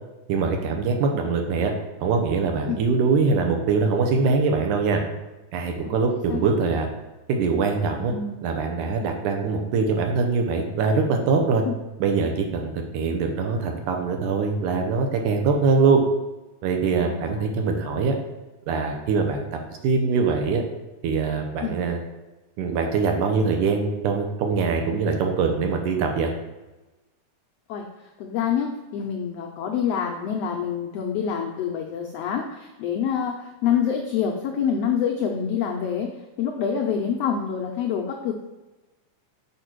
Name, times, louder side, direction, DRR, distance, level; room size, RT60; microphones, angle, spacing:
voice 1, 0.3-1.7 2.0-5.0 5.5-6.9 7.3-8.1 8.4-11.6 12.0-16.0 16.6-18.2 18.7-20.6 21.0-22.0 22.6-26.3, right 4 dB, 80° right, 3 dB, 2.3 m, -23 dB
voice 2, 7.9-8.3 11.6-11.7 17.0-17.5 21.6-21.7 27.7-27.9 28.2-36.1 36.4-38.3, left 7 dB, 80° left, 2 dB, 1.4 m, -26 dB
6.6 x 5.3 x 4.5 m, 1.1 s
omnidirectional pair, 3.6 m